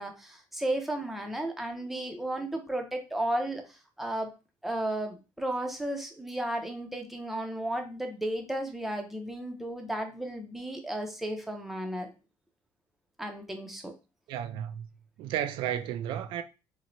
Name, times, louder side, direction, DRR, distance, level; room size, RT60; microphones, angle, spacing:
voice 1, 0.0-4.3 4.6-12.1 13.2-13.9, right 1 dB, ahead, 0.5 m, -34 dB
voice 2, 14.3-14.9 15.2-16.4, right 10 dB, 75° right, 0.3 m, -33 dB
3.0 x 2.1 x 3.8 m
cardioid pair, 160°, 9 cm